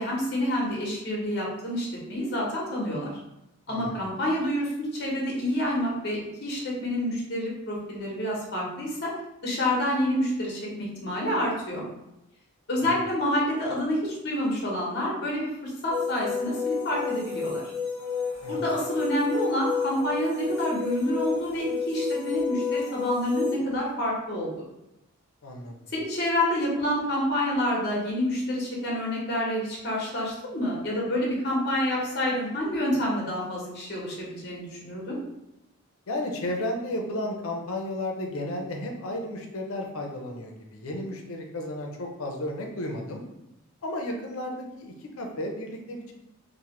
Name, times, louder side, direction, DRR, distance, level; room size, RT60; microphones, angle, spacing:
voice 1, 0.0-3.1 3.7-9.1 9.4-11.8 12.7-17.6 18.5-24.6 25.9-35.2, equal, 50° left, -4 dB, 0.9 m, -28 dB
voice 2, 3.7-4.0 12.8-12.9 18.4-18.5 25.4-25.9 36.1-43.2 43.8-46.1, left 1 dB, 85° left, 2 dB, 0.5 m, -33 dB
sound 1, 15.9-23.6, left 5 dB, 50° right, 0.7 m, -31 dB
3.0 x 2.1 x 3.0 m, 0.89 s
head